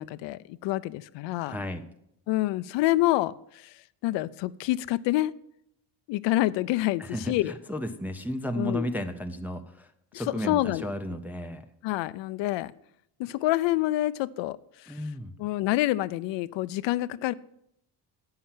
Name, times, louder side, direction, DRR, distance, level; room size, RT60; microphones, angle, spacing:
voice 1, 0.0-1.6 2.3-3.7 4.0-5.3 6.1-7.5 8.6-8.9 10.1-10.9 11.8-12.7 13.2-14.6 14.8-14.9 15.4-17.3, left 16 dB, 75° left, 0.5 m, -27 dB
voice 2, 1.4-1.9 7.0-11.7 14.9-15.3, equal, 5° right, 0.3 m, -34 dB
8.6 x 5.7 x 7.3 m
cardioid pair, 145°, 44 cm